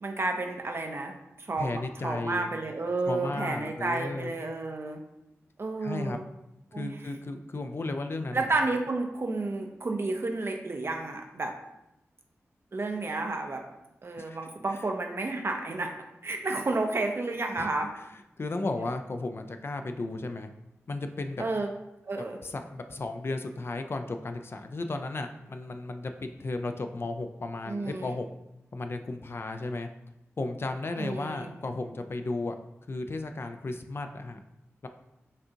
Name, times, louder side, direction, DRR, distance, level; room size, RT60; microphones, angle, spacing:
voice 1, 0.0-5.0 5.6-6.2 6.7-7.0 8.3-11.5 12.7-13.6 14.0-16.0 16.2-17.9 21.4-21.7 22.1-22.4 27.7-28.2 31.0-31.5, right 2 dB, 50° right, 3 dB, 0.6 m, -31 dB
voice 2, 1.6-2.5 3.1-4.3 5.8-6.2 6.8-8.5 14.2-14.4 17.6-17.7 18.1-20.5 20.9-21.4 22.4-28.3 28.7-29.9 30.4-32.6 32.9-34.4 34.8-34.9, left 2 dB, 50° left, 7 dB, 0.4 m, -34 dB
5.2 x 2.4 x 2.8 m, 0.88 s
cardioid pair, 45°, 5 cm